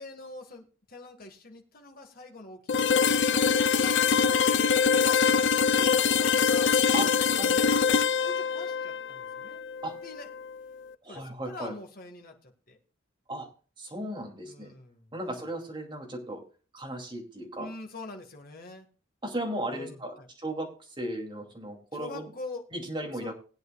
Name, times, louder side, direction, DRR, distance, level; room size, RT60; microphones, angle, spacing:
voice 1, 0.0-5.2 5.8-6.8 7.2-7.7 8.2-9.6 10.0-10.3 11.1-12.8 14.4-15.4 17.6-18.9 19.7-20.3 21.9-22.6 23.1-23.3, left 2 dB, 45° left, 3 dB, 1.8 m, -45 dB
sound 1, 2.7-10.5, left 6 dB, 65° left, 0.5 m, -24 dB
voice 2, 11.0-11.7 13.3-13.5 13.8-14.7 15.1-16.4 16.7-17.7 19.2-20.1 20.4-20.7 21.0-22.3 22.7-23.3, right 1 dB, 25° right, 0 dB, 2.6 m, -35 dB
19.5 x 9.3 x 2.4 m, 0.37 s
head